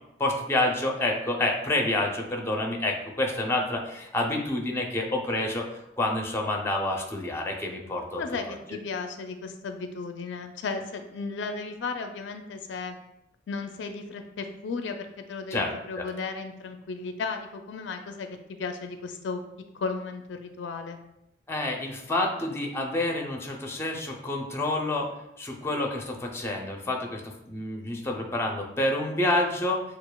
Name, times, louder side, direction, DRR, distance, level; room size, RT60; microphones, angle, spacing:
voice 1, 0.2-5.7 6.0-8.2 15.5-16.1 21.5-25.1 25.4-29.8, left 1 dB, 15° left, 1 dB, 0.5 m, -28 dB
voice 2, 8.2-13.0 13.5-18.3 18.6-19.4 19.7-21.0, left 4 dB, 75° left, 6 dB, 0.4 m, -35 dB
6.8 x 2.4 x 2.2 m, 0.84 s
head